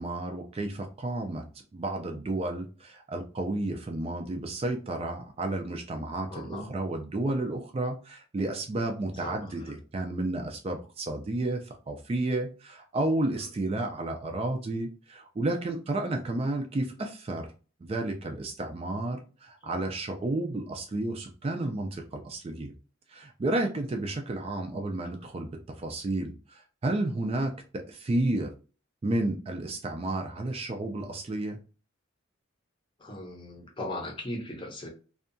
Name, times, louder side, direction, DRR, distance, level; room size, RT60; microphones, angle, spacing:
voice 1, 0.0-1.4 1.7-17.5 17.8-22.7 23.1-25.5 25.8-28.5 29.0-31.6, right 2 dB, 30° right, 0.3 m, -31 dB
voice 2, 6.3-6.7 9.2-9.5 19.6-19.7 33.0-34.9, left 1 dB, 25° left, 0.6 m, -38 dB
2.6 x 2.2 x 2.5 m
head